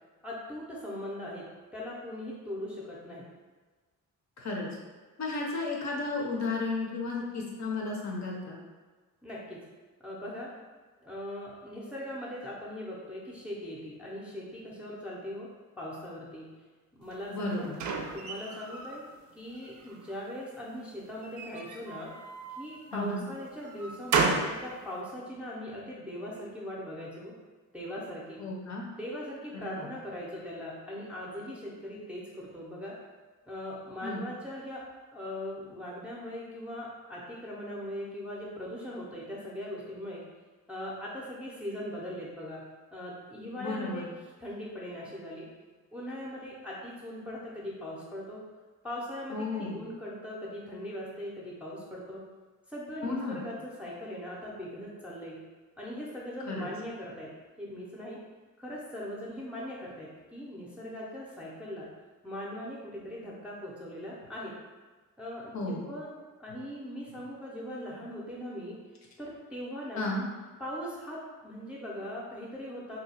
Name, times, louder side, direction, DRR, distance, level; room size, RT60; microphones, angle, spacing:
voice 1, 0.2-3.3 9.2-9.6 10.0-10.5 11.0-15.5 15.8-16.5 16.9-17.7 18.1-19.0 19.4-22.1 22.6-27.3 27.7-28.4 29.0-32.9 33.5-34.8 35.1-40.2 40.7-42.6 42.9-44.1 44.4-45.5 45.9-48.4 48.8-52.2 52.7-55.4 55.8-57.3 57.6-58.2 58.6-61.9 62.2-64.6 65.2-66.1 66.4-68.8 69.2-70.1 70.6-73.0, left 1 dB, 5° right, -6 dB, 0.5 m, -40 dB
voice 2, 4.4-4.7 5.2-8.6 17.3-17.8 22.9-23.3 28.4-28.9 29.8-29.9 34.0-34.3 43.5-44.1 49.3-49.8 53.0-53.4 56.5-56.7 65.5-65.9 70.0-70.2, left 3 dB, 55° left, -1 dB, 0.7 m, -33 dB
sound 1, 17.1-19.0 19.5-20.2 21.2-22.7 23.3-24.6, right 4 dB, 60° right, 0.4 m, -33 dB
2.8 x 2.2 x 4.1 m, 1.4 s
wide cardioid pair, 140°, 33 cm